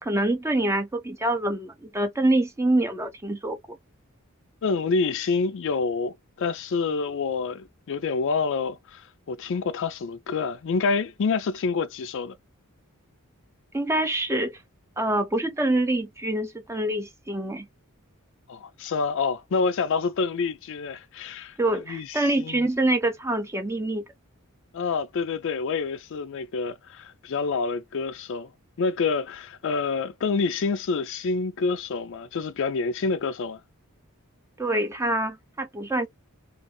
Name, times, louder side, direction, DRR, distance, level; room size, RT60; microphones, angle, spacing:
voice 1, 0.0-3.6 13.7-14.5 15.0-17.7 21.6-24.0 34.6-36.1, right 1 dB, 10° right, 0.5 m, -25 dB
voice 2, 4.6-12.4 18.5-22.7 24.7-28.5 28.8-33.6, left 4 dB, 55° left, 0.4 m, -27 dB
2.6 x 2.5 x 2.7 m
head